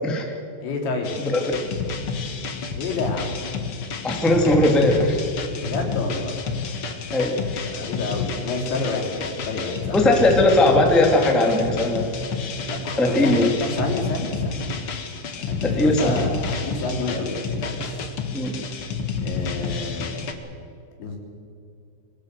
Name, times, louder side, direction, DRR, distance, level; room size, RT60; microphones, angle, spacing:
voice 1, 0.0-0.3 1.2-1.5 4.0-5.2 7.1-7.7 9.9-12.1 13.0-13.5 15.6-16.2 18.3-18.6, left 1 dB, ahead, 2 dB, 1.5 m, -19 dB
voice 2, 0.6-1.1 2.7-3.4 5.6-6.3 7.7-10.0 12.7-14.7 15.5-17.9 19.2-20.3 21.0-21.2, left 3 dB, 85° left, 1 dB, 5.8 m, -29 dB
sound 1, 1.0-20.3, left 4 dB, 60° left, 1.4 m, -30 dB
24.0 x 18.5 x 6.9 m, 2.5 s
omnidirectional pair, 5.1 m